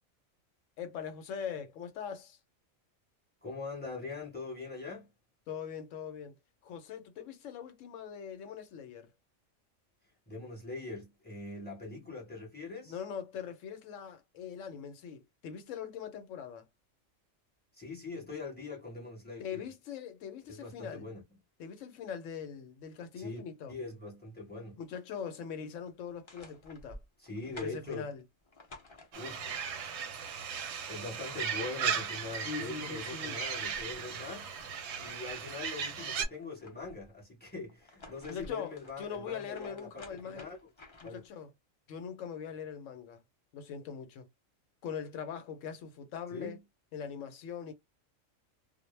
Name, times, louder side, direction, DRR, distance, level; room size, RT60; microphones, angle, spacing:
voice 1, 0.8-2.4 5.5-6.4 6.6-9.1 12.8-16.7 19.4-21.1 21.6-23.7 24.8-27.0 27.5-28.2 32.4-33.4 38.3-40.5 41.0-41.5 41.9-43.2 43.5-44.3 44.8-46.6 46.9-47.7, left 7 dB, 70° left, 0.9 m, -42 dB
voice 2, 3.4-5.1 10.3-13.0 17.7-19.7 20.5-21.2 23.2-23.4 23.7-24.8 27.2-28.1 29.1-29.6 30.9-34.5 35.0-40.6 41.0-41.2 46.3-46.6, left 3 dB, 10° left, 1.0 m, -42 dB
sound 1, 26.0-29.6 31.0-31.1 31.3-32.2 32.7-35.4 35.8-37.1 37.7-41.3, left 2 dB, 50° left, 0.3 m, -54 dB
sound 2, 29.1-36.3, right 7 dB, 65° right, 0.8 m, -37 dB
2.2 x 2.1 x 3.1 m
omnidirectional pair, 1.4 m